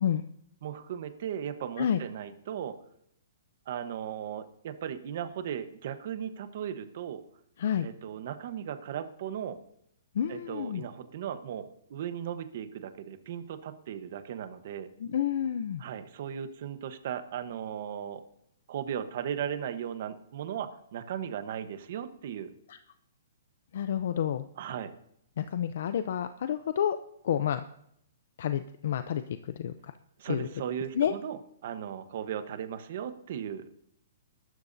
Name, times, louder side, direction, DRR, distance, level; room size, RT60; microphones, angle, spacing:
voice 1, 0.6-2.7 3.7-7.2 7.8-9.6 10.3-14.9 15.8-18.2 18.7-22.5 24.6-24.9 30.2-33.6, right 9 dB, 45° right, 10 dB, 1.1 m, -37 dB
voice 2, 10.1-10.8 15.0-15.8 22.7-22.8 23.7-24.5 25.4-27.0 27.2-27.6 28.4-29.9 30.3-30.5 30.9-31.1, left 9 dB, 55° left, 11 dB, 0.6 m, -29 dB
22.0 x 12.5 x 2.7 m, 0.74 s
hypercardioid pair, 170°, 0 cm